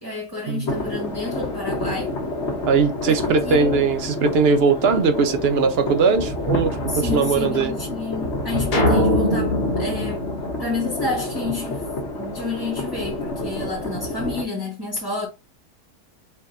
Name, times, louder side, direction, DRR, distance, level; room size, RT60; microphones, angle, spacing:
voice 1, 0.0-2.1 3.1-3.8 6.9-10.2 10.6-11.9 12.1-15.3, left 3 dB, 15° right, 1.0 m, -29 dB
sound 1, 0.7-14.4, left 2 dB, 45° left, 1.4 m, -28 dB
voice 2, 2.7-7.7, right 5 dB, 55° right, 0.7 m, -20 dB
sound 2, 8.7-11.3, equal, 65° left, 1.6 m, -22 dB
4.4 x 2.7 x 3.9 m
omnidirectional pair, 1.6 m